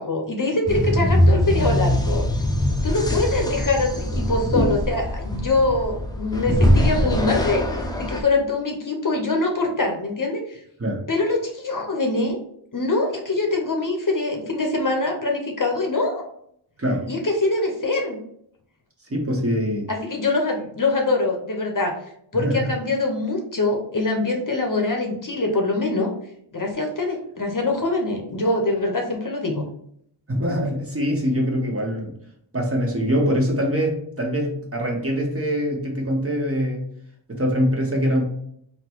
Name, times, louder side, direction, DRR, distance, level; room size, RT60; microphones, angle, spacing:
voice 1, 0.0-2.2 2.8-10.6 11.1-12.4 12.7-16.2 17.1-18.2 19.9-22.0 22.3-26.1 26.5-29.6, left 2 dB, 40° left, 2 dB, 0.8 m, -24 dB
sound 1, 0.7-8.2, left 1 dB, 10° left, 0.6 m, -22 dB
voice 2, 19.1-19.9 22.3-22.7 30.3-32.1 32.5-36.8 37.3-38.2, equal, 30° right, -1 dB, 1.1 m, -23 dB
3.9 x 2.2 x 4.5 m, 0.70 s
wide cardioid pair, 75°, 49 cm